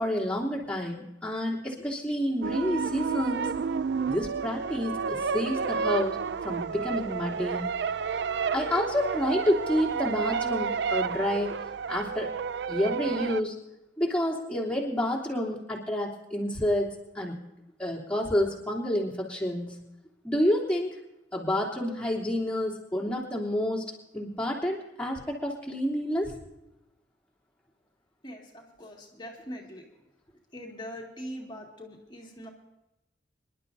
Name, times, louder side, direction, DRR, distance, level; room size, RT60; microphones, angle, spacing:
voice 1, 0.0-3.5 4.1-7.7 8.5-11.6 11.9-12.3 12.7-13.5 14.0-17.4 17.8-19.7 20.2-20.9 21.3-23.8 24.1-26.3, equal, 5° left, -4 dB, 3.1 m, -29 dB
sound 1, 2.4-13.4, right 6 dB, 65° right, 0.4 m, -31 dB
voice 2, 28.2-29.8 30.5-32.5, equal, 25° left, 0 dB, 2.2 m, -42 dB
26.5 x 11.5 x 2.7 m, 0.91 s
head